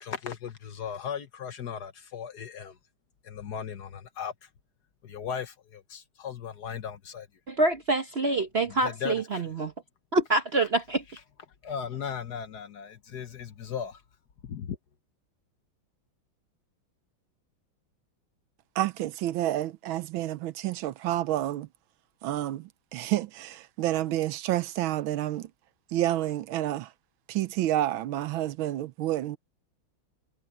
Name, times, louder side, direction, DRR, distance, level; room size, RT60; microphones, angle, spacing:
voice 1, 0.0-2.7 3.2-4.3 5.0-7.3 8.8-9.4 11.6-14.0 14.4-14.8, left 7 dB, 55° left, 1.4 m, -37 dB
voice 2, 7.5-9.7 10.1-11.0, right 2 dB, 45° right, 0.9 m, -26 dB
voice 3, 18.8-21.7 22.2-25.5 25.9-26.9 27.3-29.4, right 14 dB, 80° right, 1.4 m, -29 dB
omnidirectional pair, 2.3 m